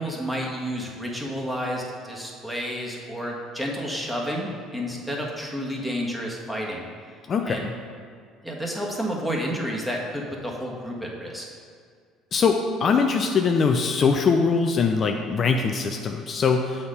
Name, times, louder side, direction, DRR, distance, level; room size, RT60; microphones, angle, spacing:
voice 1, 0.0-6.9 7.4-7.7 8.4-11.4, equal, 5° right, -2 dB, 1.5 m, -30 dB
voice 2, 7.3-7.7 12.3-16.9, left 5 dB, 45° left, 4 dB, 0.4 m, -22 dB
6.9 x 4.3 x 5.0 m, 2.1 s
hypercardioid pair, 70°, 0 cm